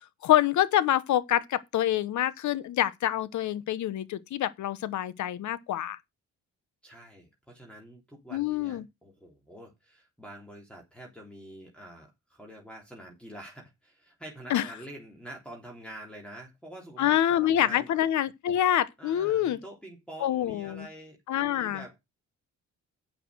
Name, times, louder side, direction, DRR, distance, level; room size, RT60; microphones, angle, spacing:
voice 1, 0.2-6.0 8.3-8.9 14.5-14.7 17.0-19.6 20.2-20.9 21.3-21.8, left 12 dB, 70° left, 1.0 m, -26 dB
voice 2, 6.8-17.1 17.4-17.9 19.0-22.0, right 1 dB, 5° left, 3.2 m, -47 dB
8.5 x 6.9 x 6.2 m
cardioid pair, 90°, 30 cm